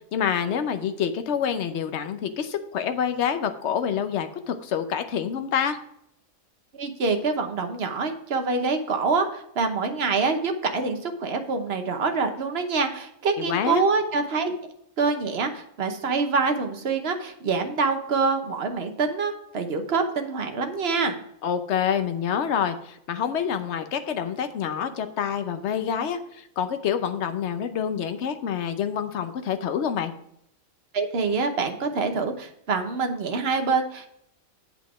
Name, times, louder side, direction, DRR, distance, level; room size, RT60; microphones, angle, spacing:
voice 1, 0.1-5.8 13.4-13.8 21.4-30.1, left 8 dB, 60° left, 9 dB, 1.0 m, -27 dB
voice 2, 6.8-14.5 15.0-21.2 30.9-34.1, right 4 dB, 50° right, 6 dB, 1.2 m, -25 dB
8.1 x 5.2 x 4.8 m, 0.75 s
omnidirectional pair, 1.4 m